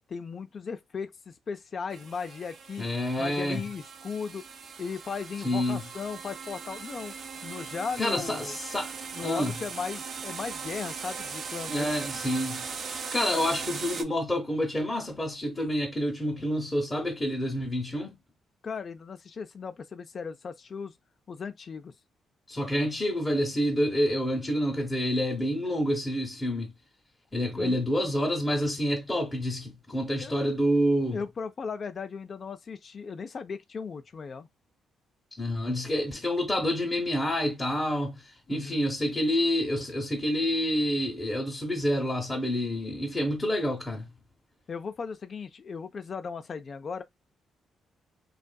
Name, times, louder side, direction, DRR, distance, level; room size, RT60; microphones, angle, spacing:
voice 1, 0.1-2.9 3.2-4.4 4.8-7.1 7.4-8.6 9.1-12.0 18.6-20.9 21.3-21.9 27.6-27.8 30.2-30.4 31.1-34.5 38.5-38.8 44.7-47.0, left 5 dB, 45° left, 0.4 m, -37 dB
sound 1, 1.9-14.0, right 5 dB, 50° right, 0.4 m, -39 dB
voice 2, 2.8-3.6 5.4-5.8 8.0-8.9 9.2-9.5 11.7-18.2 22.5-26.7 27.3-31.2 35.4-38.2 38.5-44.1, equal, 15° left, 0.8 m, -28 dB
2.6 x 2.4 x 2.2 m
cardioid pair, 90°, 0 cm